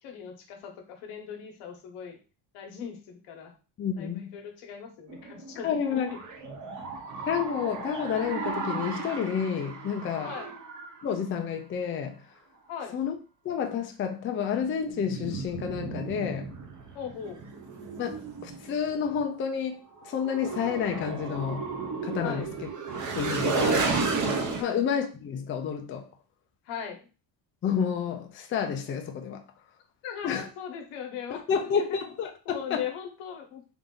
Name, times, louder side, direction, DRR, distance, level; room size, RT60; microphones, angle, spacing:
voice 1, 0.0-2.2 2.5-3.5 4.0-6.2 10.2-10.5 12.7-13.0 16.9-17.5 22.2-22.5 23.6-23.9 24.6-24.9 26.6-27.1 30.0-32.0 32.4-33.6, left 8 dB, 90° left, 1.2 m, -39 dB
voice 2, 3.8-4.4 5.6-6.1 7.3-10.3 11.0-12.2 12.9-13.2 13.4-16.5 18.0-21.7 22.0-22.5 23.1-23.9 24.6-26.1 27.6-29.4 30.2-30.5 31.3-32.8, left 7 dB, 25° left, 0.4 m, -30 dB
sound 1, 5.1-11.1 14.8-19.3 20.0-24.6, right 4 dB, 40° right, 0.8 m, -33 dB
3.4 x 2.6 x 3.7 m
cardioid pair, 150°, 48 cm